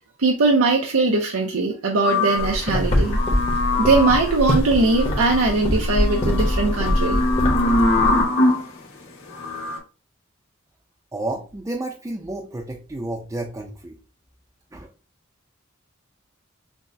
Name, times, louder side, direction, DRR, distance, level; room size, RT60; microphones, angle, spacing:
voice 1, 0.2-3.2 3.8-7.2, right 3 dB, 85° right, 0.6 m, -20 dB
sound 1, 2.0-8.7 9.3-9.8, left 2 dB, 70° left, 1.7 m, -23 dB
sound 2, 2.4-8.2, equal, 30° left, 0.9 m, -23 dB
voice 2, 11.1-13.9 14.7-14.9, right 2 dB, 15° right, 0.4 m, -31 dB
6.0 x 2.1 x 2.6 m
head